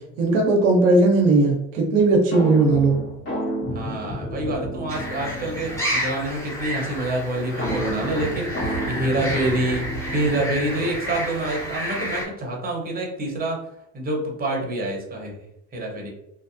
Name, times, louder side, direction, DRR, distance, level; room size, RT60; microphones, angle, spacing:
voice 1, 0.2-2.9, right 3 dB, 90° right, 1 dB, 0.7 m, -17 dB
sound 1, 2.3-6.0 7.6-11.2, equal, 30° left, 1.3 m, -31 dB
voice 2, 3.7-13.7 13.9-15.4 15.7-16.1, right 1 dB, 25° right, -1 dB, 0.9 m, -27 dB
sound 2, 4.9-12.3, equal, 10° left, 1.0 m, -31 dB
2.6 x 2.0 x 2.5 m, 0.80 s
hypercardioid pair, 80°, 36 cm